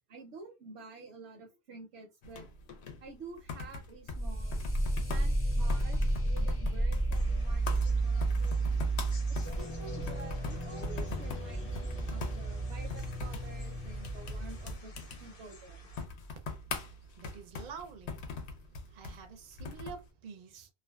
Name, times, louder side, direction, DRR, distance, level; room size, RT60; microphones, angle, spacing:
voice 1, 0.1-2.5 3.0-4.6 5.1-8.7 9.3-14.9 15.2-15.9, right 3 dB, 85° right, 0.9 m, -50 dB
sound 1, 2.2-20.1, left 4 dB, 90° left, 0.9 m, -43 dB
sound 2, 4.1-14.7, right 2 dB, 25° left, 0.3 m, -32 dB
sound 3, 7.1-16.1, left 3 dB, 60° left, 0.8 m, -56 dB
voice 2, 17.1-18.4 18.9-20.7, right 6 dB, 55° right, 0.6 m, -47 dB
2.4 x 2.3 x 2.3 m
omnidirectional pair, 1.1 m